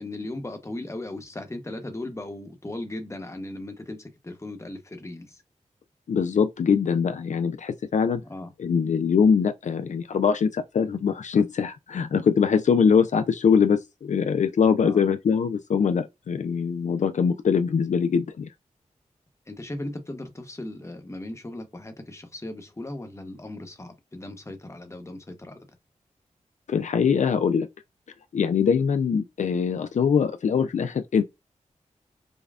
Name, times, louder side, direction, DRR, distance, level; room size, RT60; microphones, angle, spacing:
voice 1, 0.0-5.4 8.3-8.5 14.8-15.0 19.5-25.6, left 1 dB, 20° left, 0.9 m, -37 dB
voice 2, 6.1-8.2 8.6-18.5 26.7-27.7 28.3-31.2, left 6 dB, 70° left, 0.4 m, -22 dB
5.3 x 2.3 x 2.4 m
cardioid pair, 60°, 13 cm